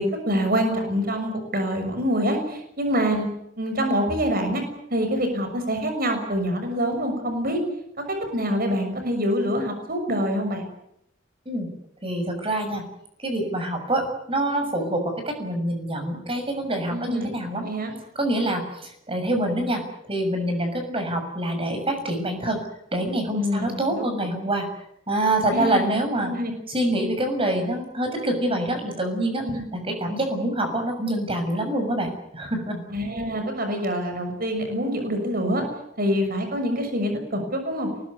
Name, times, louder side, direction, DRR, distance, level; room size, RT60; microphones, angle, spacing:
voice 1, 0.0-3.3 3.6-4.6 4.9-7.6 8.1-10.7 16.9-17.3 17.6-17.9 23.3-24.2 25.5-26.5 29.4-29.6 32.9-35.6 36.0-37.9, equal, 50° right, 6 dB, 6.5 m, -25 dB
voice 2, 12.0-12.8 13.2-17.7 18.1-19.8 20.1-22.6 22.9-24.7 25.1-26.3 26.7-29.5 29.7-32.8, right 1 dB, 30° right, 5 dB, 6.8 m, -26 dB
24.0 x 20.0 x 9.7 m, 0.77 s
head